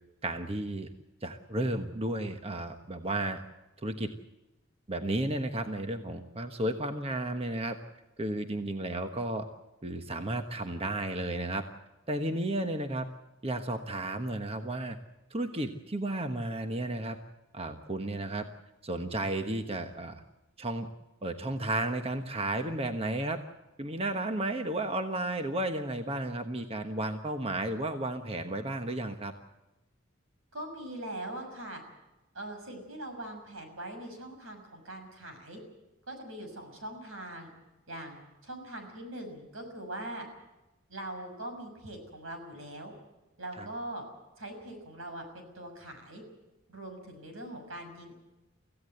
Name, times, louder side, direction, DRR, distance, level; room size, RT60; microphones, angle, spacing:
voice 1, 0.2-0.9 1.2-3.4 3.8-4.1 4.9-7.8 8.2-9.4 9.8-11.6 12.1-13.1 13.4-15.0 15.3-17.2 17.5-18.4 18.8-20.2 20.6-20.9 21.2-23.4 23.8-29.3 43.6-43.7, right 1 dB, 30° right, 7 dB, 1.3 m, -33 dB
voice 2, 30.5-31.8 32.3-35.6 36.1-37.5 37.9-40.3 40.9-42.9 43.4-44.0 44.4-46.2 46.7-48.2, right 1 dB, 85° right, 5 dB, 6.3 m, -42 dB
25.0 x 16.0 x 8.0 m, 1.0 s
head